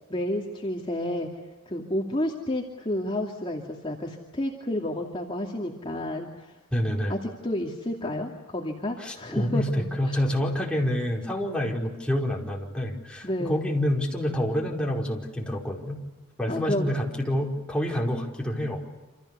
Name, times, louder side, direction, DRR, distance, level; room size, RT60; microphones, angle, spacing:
voice 1, 0.1-1.3 1.7-6.5 7.1-10.2 13.2-13.6 16.5-16.9, left 1 dB, 25° left, -1 dB, 2.6 m, -30 dB
voice 2, 6.7-7.1 9.0-16.0 16.4-18.8, equal, 5° left, -2 dB, 4.9 m, -27 dB
28.5 x 27.5 x 6.9 m, 1.1 s
head